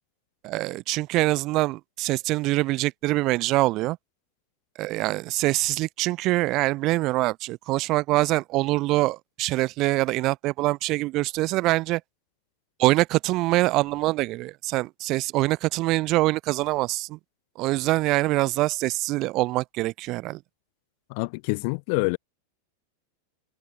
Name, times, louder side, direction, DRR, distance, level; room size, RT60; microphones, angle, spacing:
voice 1, 0.4-4.0 4.8-12.0 12.8-17.2 17.6-20.4, right 19 dB, 40° right, 0.4 m, -24 dB
voice 2, 21.1-22.2, left 34 dB, 45° left, 0.6 m, -26 dB
figure-of-eight pair, 90°, 0 cm